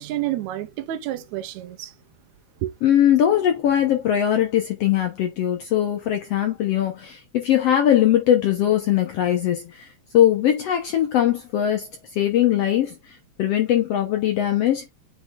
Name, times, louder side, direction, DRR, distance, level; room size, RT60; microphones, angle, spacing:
voice 1, 0.0-1.9 2.6-2.7, right 13 dB, 75° right, 2.0 m, -29 dB
voice 2, 2.8-9.9 10.1-11.9 12.1-14.8, left 11 dB, 65° left, 1.7 m, -20 dB
8.1 x 3.3 x 3.7 m
omnidirectional pair, 3.5 m